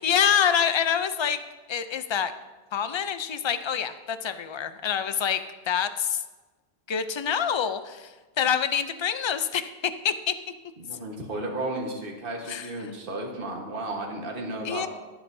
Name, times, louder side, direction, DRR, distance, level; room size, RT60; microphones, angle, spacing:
voice 1, 0.0-1.4 1.7-2.3 2.7-5.4 5.7-6.2 6.9-10.3 12.5-12.7 14.6-14.9, left 8 dB, 45° left, 11 dB, 0.3 m, -26 dB
voice 2, 10.8-14.9, right 2 dB, 55° right, 0 dB, 1.6 m, -33 dB
18.0 x 8.0 x 2.7 m, 1.2 s
omnidirectional pair, 1.1 m